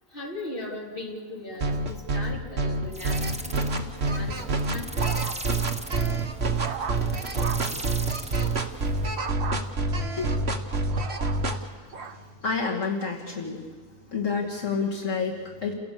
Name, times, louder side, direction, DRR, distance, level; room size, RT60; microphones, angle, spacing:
voice 1, 0.1-3.6 4.0-4.4 4.7-4.9, left 2 dB, 45° left, -2 dB, 3.5 m, -38 dB
sound 1, 1.6-11.6, right 3 dB, 55° right, 1.8 m, -27 dB
sound 2, 2.9-9.2, right 1 dB, 5° right, 0.7 m, -39 dB
sound 3, 4.3-5.7 6.1-7.8 9.2-9.6 10.2-12.2 12.8-13.2, right 5 dB, 80° right, 1.5 m, -37 dB
voice 2, 10.1-10.5 11.6-12.2 12.4-13.6 14.1-15.7, left 5 dB, 75° left, -2 dB, 2.9 m, -30 dB
29.5 x 16.5 x 7.0 m, 1.5 s
omnidirectional pair, 1.3 m